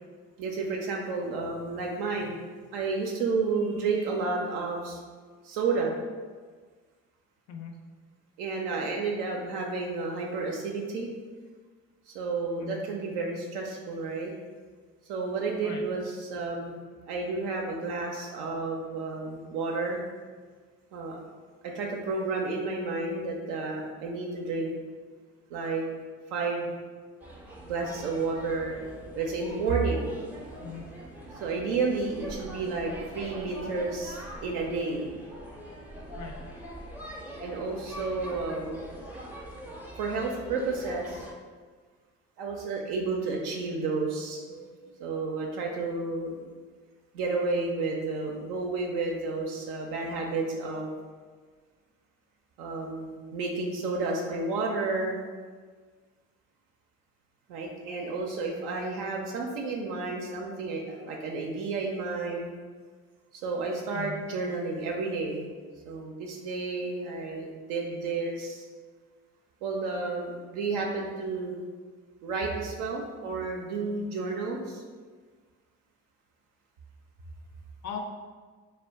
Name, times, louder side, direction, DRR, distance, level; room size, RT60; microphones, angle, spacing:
voice 1, 0.4-2.3 2.7-5.0 5.4-5.9 8.4-11.1 12.1-14.3 15.1-16.8 17.1-20.0 20.9-21.2 21.6-24.7 25.5-25.8 26.3-26.8 27.7-28.8 29.1-30.1 31.4-35.2 37.4-38.8 40.0-41.2 42.4-46.4 47.1-50.9 52.6-55.2 57.5-62.5 63.3-65.5 65.8-68.6 69.6-71.6 72.2-74.8, right 3 dB, 70° right, 0 dB, 0.5 m, -31 dB
sound 1, 27.2-41.3, right 1 dB, 5° right, 0.5 m, -43 dB
voice 2, 30.6-30.9 36.2-36.3 63.9-64.2 77.8-78.0, left 7 dB, 45° left, 3 dB, 0.5 m, -39 dB
2.2 x 2.1 x 3.4 m, 1.5 s
figure-of-eight pair, 45°, 40 cm